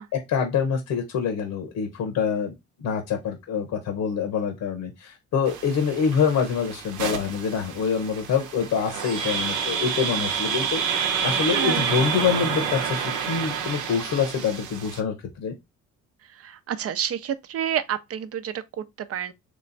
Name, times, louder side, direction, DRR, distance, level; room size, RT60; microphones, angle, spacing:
voice 1, 0.1-2.5 2.8-15.5, left 6 dB, 80° left, 1.0 m, -26 dB
sound 1, 5.5-15.0, right 7 dB, 80° right, 0.8 m, -29 dB
voice 2, 11.5-11.9 16.4-19.3, right 9 dB, 50° right, 0.6 m, -29 dB
3.3 x 3.0 x 4.0 m
cardioid pair, 90°, 30 cm